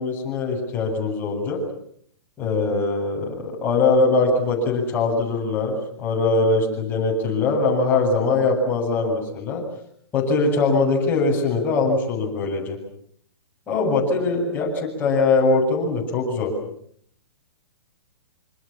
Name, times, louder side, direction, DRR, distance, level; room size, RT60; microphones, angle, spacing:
voice 1, 0.0-1.6 2.4-9.6 10.1-12.8 13.7-16.5, left 3 dB, 15° left, -4 dB, 8.0 m, -22 dB
27.5 x 25.5 x 7.5 m, 0.67 s
hypercardioid pair, 160°, 14 cm